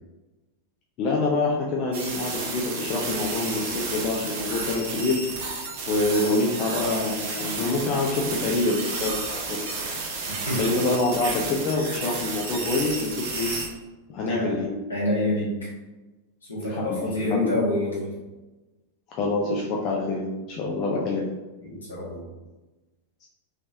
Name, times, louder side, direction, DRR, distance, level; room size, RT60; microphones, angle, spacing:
voice 1, 1.0-5.1 5.9-9.6 10.6-13.5 14.1-14.7 16.7-17.0 17.3-17.5 19.1-21.3 23.2-23.3, left 2 dB, 40° left, -2 dB, 0.5 m, -26 dB
sound 1, 1.9-13.7, right 3 dB, 50° right, 0.7 m, -32 dB
voice 2, 10.3-10.6 14.2-14.5 14.9-15.7 16.4-18.1 21.6-22.2, left 1 dB, 75° left, -7 dB, 1.5 m, -27 dB
3.2 x 3.2 x 2.7 m, 1.1 s
figure-of-eight pair, 90°, 0 cm